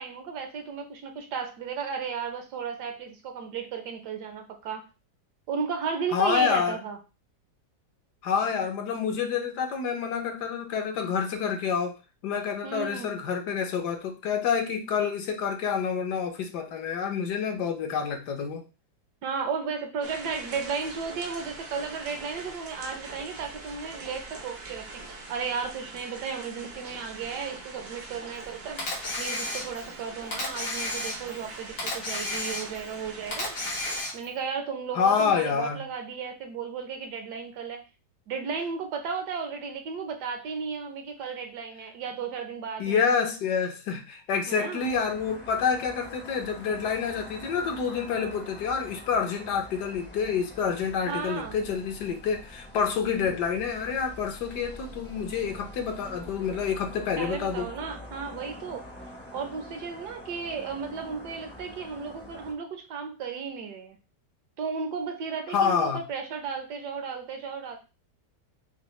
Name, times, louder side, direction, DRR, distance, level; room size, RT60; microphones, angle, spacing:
voice 1, 0.0-4.9 5.5-7.0 12.6-13.1 19.2-28.9 29.2-33.6 34.1-37.8 38.3-43.0 44.5-44.8 51.1-51.6 57.2-58.9 59.3-64.0 64.6-67.8, right 5 dB, 70° right, 5 dB, 1.3 m, -34 dB
voice 2, 6.1-6.8 8.2-12.0 12.2-18.6 34.9-35.8 42.8-57.7 65.5-66.0, left 6 dB, 70° left, 5 dB, 1.3 m, -28 dB
sound 1, 20.0-34.0, right 3 dB, 55° right, 0.7 m, -43 dB
Camera, 28.8-29.9 30.3-31.4 31.8-32.9 33.3-34.4, left 2 dB, 90° left, 2.1 m, -32 dB
sound 2, 44.8-62.5, left 1 dB, 15° left, 0.4 m, -45 dB
5.9 x 2.0 x 3.1 m, 0.30 s
omnidirectional pair, 1.9 m